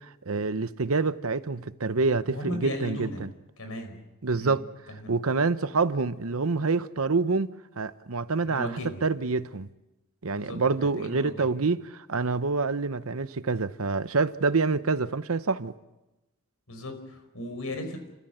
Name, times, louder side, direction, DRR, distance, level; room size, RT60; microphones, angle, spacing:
voice 1, 0.3-3.3 4.2-4.7 5.1-8.7 9.0-9.7 10.2-15.7, right 4 dB, 75° right, 0.9 m, -27 dB
voice 2, 2.2-3.2 3.6-4.0 4.3-4.6 5.0-5.1 8.4-9.0 10.3-11.5 16.7-18.0, left 1 dB, 75° left, 5.0 m, -37 dB
29.0 x 15.0 x 7.9 m
head